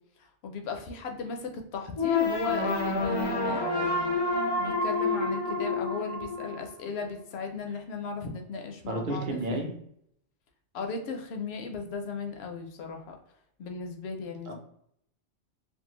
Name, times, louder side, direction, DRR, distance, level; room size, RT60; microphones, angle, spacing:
voice 1, 0.2-4.2 4.6-9.7 10.7-13.1 13.6-14.5, left 5 dB, 65° left, 4 dB, 0.7 m, -36 dB
sound 1, 2.0-7.0, left 3 dB, 35° left, 0.4 m, -28 dB
voice 2, 8.8-9.7 14.5-14.6, right 1 dB, 50° right, 2 dB, 0.7 m, -31 dB
2.6 x 2.4 x 2.8 m, 0.71 s
omnidirectional pair, 1.2 m